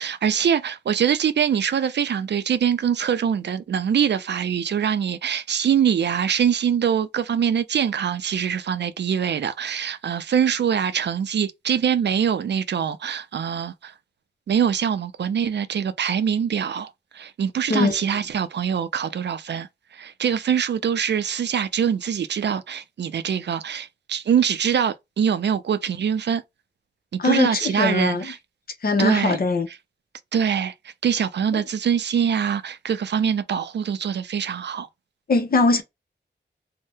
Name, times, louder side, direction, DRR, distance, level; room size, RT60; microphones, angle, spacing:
voice 1, 0.0-13.9 14.5-19.7 19.9-26.4 27.1-28.4 29.0-29.4 30.3-34.9, right 8 dB, 70° right, 0.4 m, -23 dB
voice 2, 27.2-28.3 28.8-29.7 35.3-35.8, left 3 dB, 55° left, 0.7 m, -21 dB
2.7 x 2.1 x 3.4 m
wide cardioid pair, 125°, 18 cm